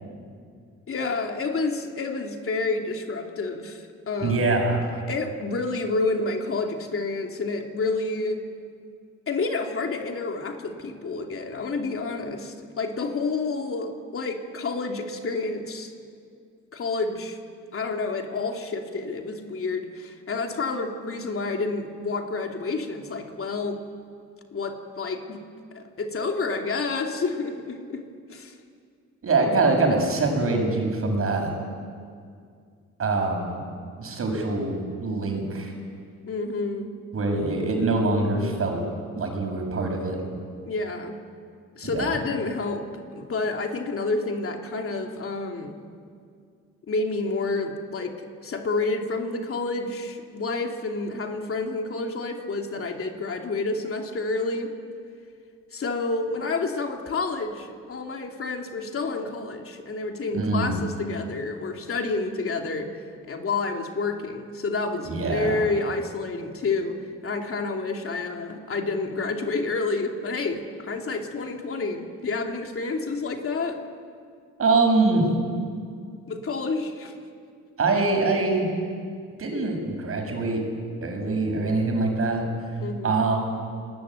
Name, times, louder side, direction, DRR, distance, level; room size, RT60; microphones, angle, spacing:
voice 1, 0.9-4.6 5.1-8.4 9.3-15.9 16.7-17.4 17.7-23.8 24.5-25.4 25.7-28.0 28.3-28.5 36.3-36.9 40.7-41.2 41.7-42.8 43.1-45.7 46.9-48.2 48.4-54.7 55.7-73.8 76.3-77.1 82.8-83.2, left 3 dB, 45° left, 3 dB, 3.0 m, -29 dB
voice 2, 4.2-4.8 29.2-31.5 33.0-33.6 34.0-35.7 37.1-38.8 39.2-40.2 41.8-42.2 60.3-60.8 65.1-65.6 74.6-75.3 77.8-78.7 79.4-80.6 81.0-82.5 83.0-83.4, right 3 dB, 50° right, 3 dB, 7.1 m, -24 dB
29.0 x 20.5 x 9.2 m, 2.2 s
cardioid pair, 90°, 30 cm